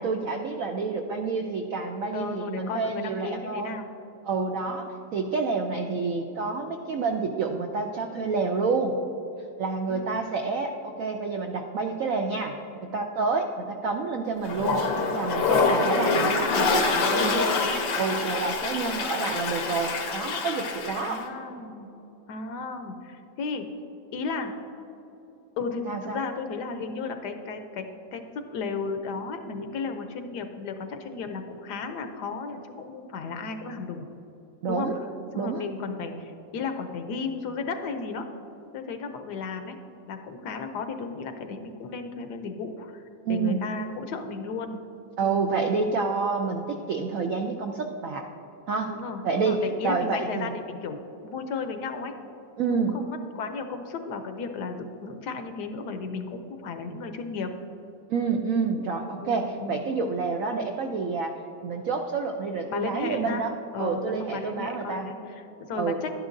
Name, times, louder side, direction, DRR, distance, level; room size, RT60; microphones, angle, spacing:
voice 1, 0.0-3.7 4.3-4.9 5.1-8.9 9.6-12.5 12.8-14.9 15.1-17.5 17.9-21.2 25.9-26.2 34.6-35.0 35.3-35.7 43.2-43.6 45.2-48.3 48.7-48.9 49.2-49.6 49.8-50.5 52.6-53.0 58.1-61.3 61.6-63.5 63.8-65.1 65.7-66.0, right 4 dB, 75° right, 3 dB, 0.7 m, -28 dB
voice 2, 2.1-3.9 4.8-4.9 9.9-10.2 17.0-17.7 21.0-21.9 22.3-23.7 24.1-24.5 25.6-34.0 34.7-35.0 35.3-38.3 38.7-39.8 40.1-43.0 43.3-44.8 45.2-45.5 48.9-52.1 52.7-57.5 59.2-59.8 62.7-63.5 63.7-66.1, left 4 dB, 70° left, 7 dB, 1.1 m, -34 dB
Toilet flush, 14.4-21.2, left 4 dB, 90° left, 1.7 m, -26 dB
11.5 x 11.0 x 2.6 m, 3.0 s
omnidirectional pair, 2.0 m